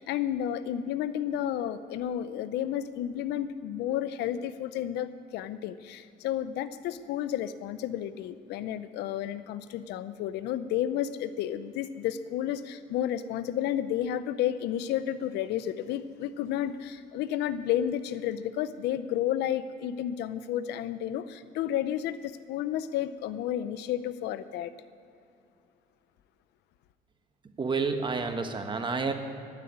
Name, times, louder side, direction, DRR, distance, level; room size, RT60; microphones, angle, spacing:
voice 1, 0.0-24.7, left 11 dB, 85° left, 14 dB, 0.7 m, -31 dB
voice 2, 27.6-29.1, right 4 dB, 30° right, 6 dB, 1.2 m, -29 dB
12.0 x 10.5 x 8.7 m, 2.7 s
cardioid pair, 110°, 17 cm